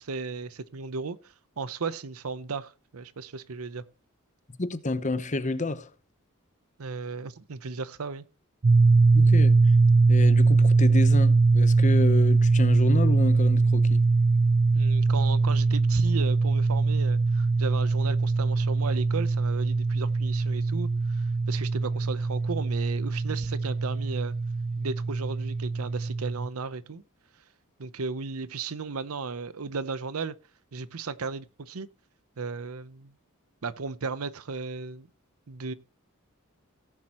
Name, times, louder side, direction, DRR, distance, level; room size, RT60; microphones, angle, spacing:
voice 1, 0.0-3.8 6.8-8.2 14.7-24.3 24.8-27.0 27.8-30.3 30.7-31.9 32.4-33.1 33.6-35.1 35.5-35.7, right 4 dB, 90° right, 0.7 m, -35 dB
voice 2, 4.6-5.9 9.1-9.6 10.1-14.0, left 2 dB, 35° left, 0.9 m, -29 dB
sound 1, 8.6-26.5, right 3 dB, 40° right, 0.5 m, -22 dB
17.5 x 7.5 x 3.0 m
head